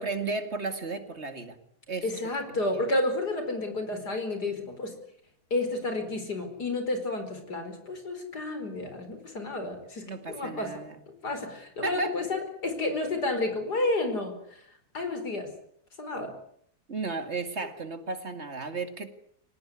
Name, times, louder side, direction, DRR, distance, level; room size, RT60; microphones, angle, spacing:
voice 1, 0.0-1.6 1.9-2.2 2.5-2.8 10.0-11.0 11.8-12.2 16.9-19.1, right 3 dB, 45° right, 9 dB, 2.5 m, -34 dB
voice 2, 2.0-5.0 5.5-10.7 11.2-14.4 14.9-15.5 16.0-16.3, left 2 dB, 90° left, 7 dB, 5.3 m, -31 dB
25.5 x 18.5 x 9.7 m, 0.69 s
omnidirectional pair, 1.7 m